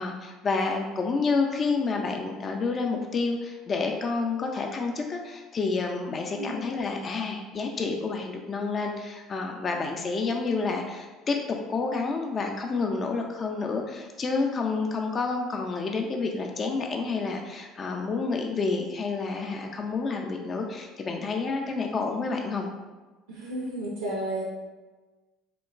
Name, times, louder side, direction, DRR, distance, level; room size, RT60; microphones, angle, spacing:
voice 1, 0.0-22.7, left 4 dB, 35° left, 2 dB, 0.3 m, -29 dB
voice 2, 23.3-24.5, right 1 dB, 85° right, -4 dB, 0.4 m, -32 dB
2.9 x 2.1 x 2.4 m, 1.2 s
hypercardioid pair, 65°, 0 cm